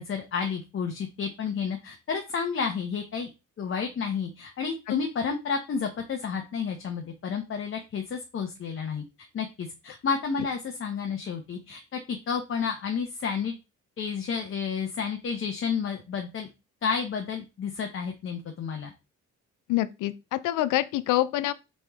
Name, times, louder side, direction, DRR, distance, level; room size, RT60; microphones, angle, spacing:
voice 1, 0.0-3.3 3.6-9.0 9.3-13.5 14.0-16.5 16.8-18.9, left 6 dB, 45° left, 0.8 m, -31 dB
voice 2, 19.7-21.5, left 15 dB, 90° left, 0.5 m, -26 dB
4.2 x 3.0 x 3.5 m
cardioid pair, 90°, 30 cm